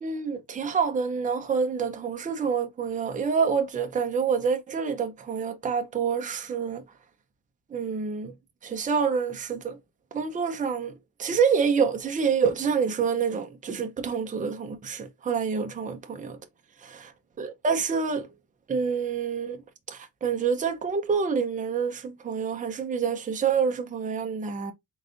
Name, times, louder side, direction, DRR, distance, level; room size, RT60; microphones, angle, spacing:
voice 1, 0.0-6.8 7.7-8.3 8.6-9.8 10.1-10.9 11.2-16.4 17.4-18.3 18.7-19.6 19.9-24.7, right 6 dB, 20° right, 0.7 m, -27 dB
3.9 x 3.8 x 2.5 m
cardioid pair, 135°, 34 cm